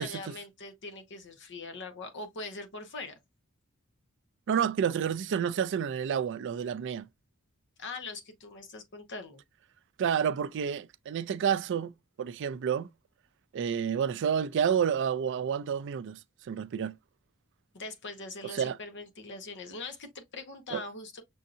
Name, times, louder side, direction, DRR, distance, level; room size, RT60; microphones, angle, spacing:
voice 1, 0.0-3.2 7.8-9.4 17.7-21.2, left 3 dB, 55° left, 1.0 m, -42 dB
voice 2, 4.5-7.1 10.0-11.9 12.2-12.9 13.5-16.2 16.4-16.9 18.5-18.8 20.7-20.8, right 8 dB, 55° right, 0.3 m, -29 dB
6.3 x 2.7 x 2.5 m
head